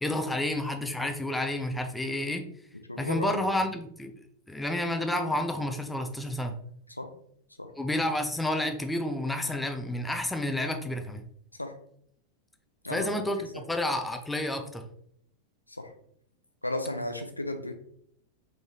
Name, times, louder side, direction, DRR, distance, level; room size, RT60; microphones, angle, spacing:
voice 1, 0.0-2.4 3.0-4.1 4.5-6.5 7.8-11.2 12.9-14.8, left 1 dB, 5° left, 5 dB, 0.6 m, -30 dB
voice 2, 2.9-3.7 7.0-7.1 7.6-7.7 11.6-11.8 12.8-13.1 15.8-15.9 16.6-17.7, left 1 dB, 85° left, 6 dB, 0.5 m, -34 dB
3.8 x 3.8 x 3.1 m, 0.68 s
figure-of-eight pair, 90°, 0 cm